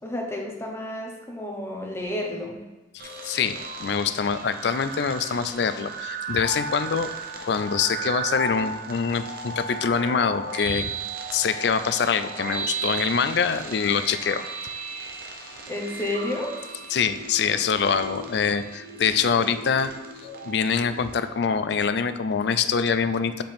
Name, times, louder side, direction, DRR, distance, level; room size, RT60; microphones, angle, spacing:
voice 1, 0.0-2.6 15.7-16.6, left 1 dB, 15° left, 0 dB, 1.0 m, -31 dB
voice 2, 2.9-7.1 7.4-10.9 11.3-14.4 16.9-19.9 20.4-23.4, left 6 dB, 65° left, 12 dB, 0.4 m, -24 dB
sound 1, 3.0-21.3, right 3 dB, 55° right, 0.8 m, -35 dB
7.7 x 4.4 x 3.5 m, 1.2 s
head